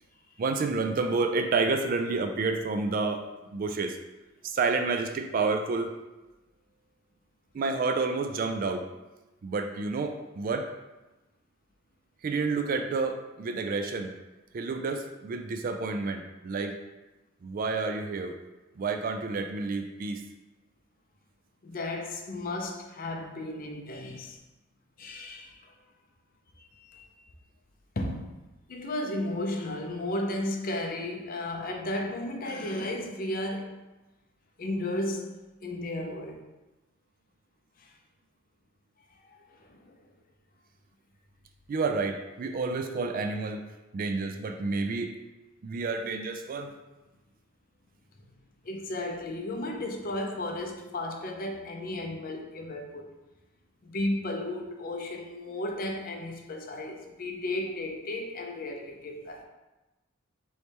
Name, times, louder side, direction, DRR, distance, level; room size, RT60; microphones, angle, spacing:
voice 1, 0.4-4.0 4.4-5.9 7.5-8.8 9.4-10.7 12.2-14.1 14.5-16.8 17.4-18.4 18.8-20.2 41.7-43.7 43.9-45.1 45.6-46.7, right 4 dB, 45° right, 0.3 m, -29 dB
voice 2, 21.6-24.4 25.0-25.6 26.6-27.1 28.0-28.3 28.7-33.7 34.6-35.3 35.6-36.4 37.8-37.9 39.2-40.0 48.6-53.0 53.8-59.4, left 1 dB, 45° left, 0.5 m, -34 dB
3.4 x 3.1 x 4.1 m
head